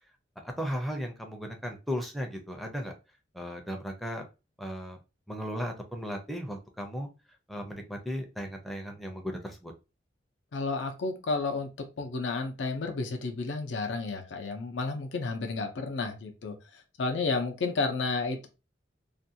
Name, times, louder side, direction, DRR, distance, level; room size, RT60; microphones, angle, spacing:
voice 1, 0.6-2.9 3.3-4.3 4.6-5.0 5.3-7.1 7.5-9.7, equal, ahead, 2 dB, 0.4 m, -36 dB
voice 2, 10.5-11.7 12.0-16.6 17.0-18.5, left 3 dB, 75° left, 5 dB, 0.5 m, -31 dB
2.5 x 2.2 x 2.7 m, 0.28 s
head